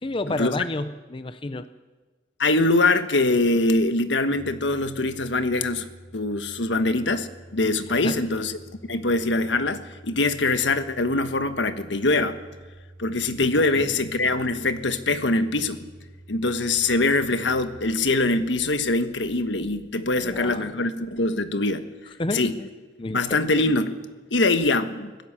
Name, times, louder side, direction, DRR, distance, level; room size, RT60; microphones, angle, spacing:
voice 1, 0.0-1.7 7.9-8.2 13.8-14.1 20.2-20.8 22.2-22.7 23.0-23.4, left 2 dB, 30° left, 11 dB, 0.6 m, -31 dB
voice 2, 2.4-5.9 6.1-8.6 8.9-12.4 13.0-15.9 16.3-21.8 22.3-22.6 23.1-23.9 24.3-25.1, left 2 dB, 75° left, 10 dB, 1.4 m, -23 dB
Domestic sounds home sounds, 4.3-21.2, right 1 dB, 5° right, 5.4 m, -48 dB
25.0 x 16.5 x 7.5 m, 1.3 s
head